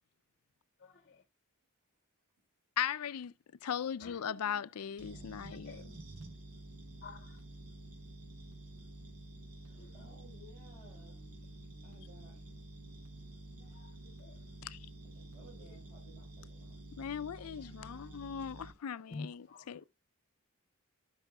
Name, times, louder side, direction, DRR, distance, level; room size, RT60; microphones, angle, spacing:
voice 1, 0.8-1.2 4.0-4.2 5.6-5.8 7.0-7.4 9.8-9.9 13.6-14.4 17.4-18.2 19.1-19.8, left 3 dB, 40° left, 0.8 m, -50 dB
voice 2, 2.8-3.3 3.6-6.0 14.6-14.8 17.0-19.8, left 8 dB, 75° left, 0.4 m, -38 dB
voice 3, 3.9-5.6 9.6-11.2 11.8-12.5 15.1-16.8 17.4-17.6 18.0-18.1, right 2 dB, 35° right, 4.5 m, -59 dB
sound 1, 5.0-18.7, right 1 dB, 85° right, 3.5 m, -50 dB
15.0 x 5.6 x 2.2 m
head